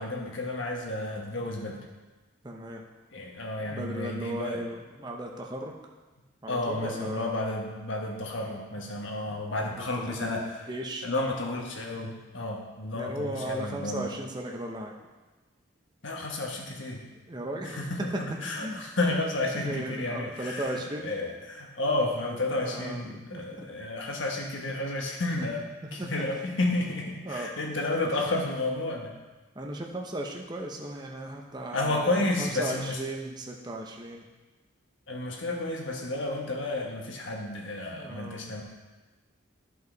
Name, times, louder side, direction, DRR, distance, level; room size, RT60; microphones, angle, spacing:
voice 1, 0.0-1.8 3.1-4.6 6.5-10.7 11.0-14.1 16.0-17.0 17.6-29.2 31.7-33.0 35.1-38.6, left 2 dB, 70° left, 0 dB, 1.5 m, -31 dB
voice 2, 2.4-2.8 3.6-5.8 6.4-7.3 9.3-11.1 12.9-14.9 17.1-18.2 18.5-18.8 19.5-21.1 22.6-23.8 26.0-26.1 27.2-27.5 29.5-34.3 37.9-38.5, right 1 dB, 20° right, 0 dB, 0.7 m, -36 dB
13.0 x 5.5 x 4.0 m, 1.2 s
head